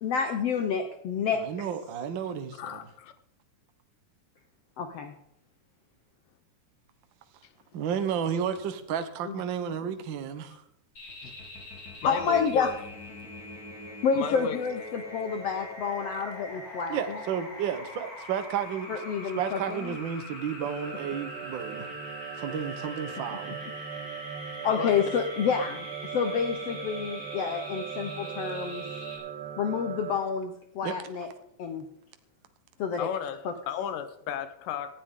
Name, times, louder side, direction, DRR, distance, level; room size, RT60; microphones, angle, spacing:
voice 1, 0.0-1.4 4.8-5.1 9.2-9.4 11.2-11.3 12.0-12.7 14.0-17.2 18.9-20.0 24.6-25.9 26.1-28.8 29.6-31.3 31.6-31.8 32.8-33.1 33.4-33.5, left 6 dB, 65° left, 1.6 m, -29 dB
voice 2, 1.3-2.8 7.7-10.6 16.9-19.0 19.3-21.9 22.4-23.6 30.8-30.9, right 8 dB, 80° right, 1.0 m, -32 dB
voice 3, 2.6-3.1 12.0-12.7 14.1-14.6 24.7-25.0 33.0-35.0, left 9 dB, 90° left, 2.6 m, -34 dB
sound 1, 11.0-29.2, left 2 dB, 35° left, 4.3 m, -43 dB
sound 2, 20.8-30.2, right 8 dB, 55° right, 2.9 m, -39 dB
18.0 x 14.0 x 3.7 m
omnidirectional pair, 3.8 m